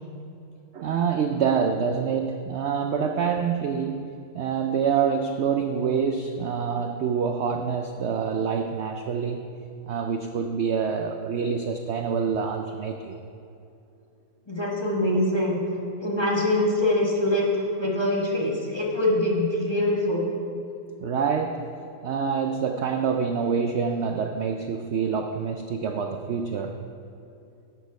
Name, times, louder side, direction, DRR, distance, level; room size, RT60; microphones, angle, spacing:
voice 1, 0.7-4.0 4.3-9.4 9.9-13.2 21.0-21.6 22.0-26.8, right 6 dB, 90° right, 5 dB, 0.6 m, -26 dB
voice 2, 14.5-15.6 16.0-20.3, left 1 dB, 20° left, -3 dB, 1.1 m, -24 dB
11.0 x 6.3 x 5.2 m, 2.6 s
omnidirectional pair, 1.7 m